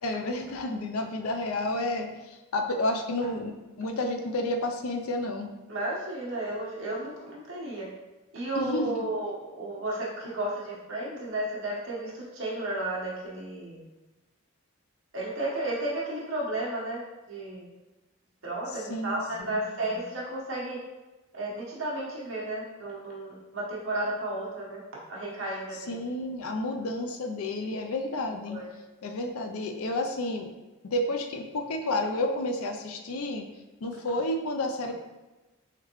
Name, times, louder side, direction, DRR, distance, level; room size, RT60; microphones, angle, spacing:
voice 1, 0.0-5.5 8.5-9.1 18.9-19.6 25.9-28.6 29.0-30.5 30.8-33.5 33.8-34.9, left 1 dB, 80° left, 4 dB, 0.5 m, -31 dB
voice 2, 5.7-7.9 8.3-13.8 15.1-17.0 17.3-17.7 18.4-20.8 21.3-24.8 25.1-26.0 28.5-28.7, right 1 dB, 70° right, -6 dB, 1.2 m, -33 dB
3.7 x 3.4 x 3.0 m, 1.1 s
head